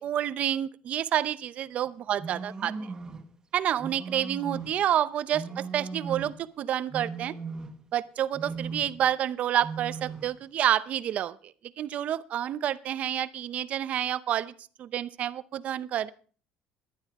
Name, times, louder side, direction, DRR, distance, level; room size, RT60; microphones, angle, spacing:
voice 1, 0.0-2.7 3.5-7.3 7.9-14.5 14.8-16.1, right 11 dB, 50° right, 15 dB, 0.7 m, -29 dB
sound 1, 2.2-3.3 3.8-4.8 5.3-6.4 6.9-7.9 8.3-9.0 9.6-10.4, right 4 dB, 25° right, 1.4 m, -38 dB
18.0 x 11.5 x 3.6 m, 0.42 s
cardioid pair, 105°, 3 cm